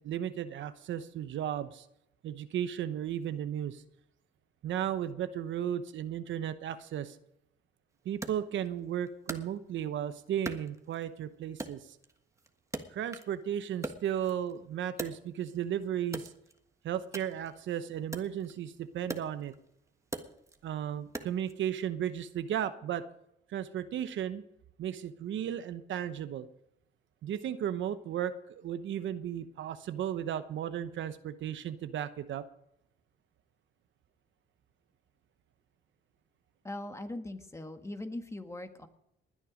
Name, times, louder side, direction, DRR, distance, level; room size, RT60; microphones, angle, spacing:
voice 1, 0.0-1.9 2.2-3.8 4.6-7.2 8.0-12.0 12.9-16.3 16.8-19.5 20.6-23.0 23.5-24.4 24.8-26.5 27.2-32.4, right 10 dB, 70° right, 11 dB, 1.0 m, -35 dB
Wood, 8.2-10.0 10.4-11.2 11.6-13.4 13.7-15.6 16.0-21.6, right 2 dB, 15° right, 1.4 m, -43 dB
voice 2, 36.6-38.9, left 1 dB, 15° left, 7 dB, 1.6 m, -40 dB
20.0 x 10.0 x 5.1 m, 0.79 s
cardioid pair, 90°, 20 cm